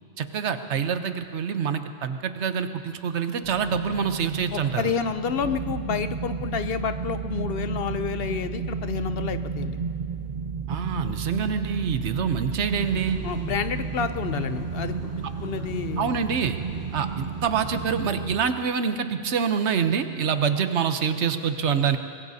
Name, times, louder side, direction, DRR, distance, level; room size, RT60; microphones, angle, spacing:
voice 1, 0.2-4.9 10.7-13.2 16.0-16.6 16.9-22.0, right 6 dB, 80° right, 9 dB, 1.1 m, -26 dB
sound 1, 3.4-18.4, right 5 dB, 45° right, 0.7 m, -32 dB
voice 2, 4.5-9.8 13.2-14.9 15.4-16.1, left 6 dB, 65° left, 10 dB, 0.8 m, -29 dB
sound 2, 12.7-17.8, right 1 dB, 15° right, 1.0 m, -42 dB
24.0 x 21.0 x 2.8 m, 2.5 s
omnidirectional pair, 1.2 m